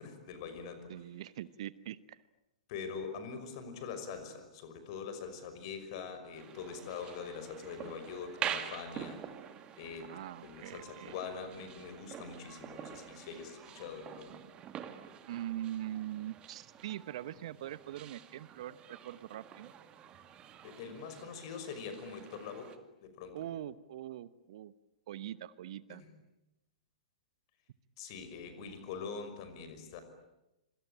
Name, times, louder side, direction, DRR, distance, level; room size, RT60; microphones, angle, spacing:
voice 1, 0.0-0.9 2.7-9.2 9.8-10.1 10.4-14.4 20.6-22.7 23.0-23.5 25.9-26.1 28.0-30.0, left 5 dB, 45° left, 9 dB, 5.8 m, -43 dB
voice 2, 0.9-2.2 10.0-11.1 15.3-19.7 23.3-24.7 25.1-26.0, right 12 dB, 50° right, 17 dB, 1.0 m, -42 dB
sound 1, 6.4-22.8, right 9 dB, 25° right, 2.2 m, -46 dB
26.5 x 25.0 x 9.0 m, 0.94 s
figure-of-eight pair, 110°, 4 cm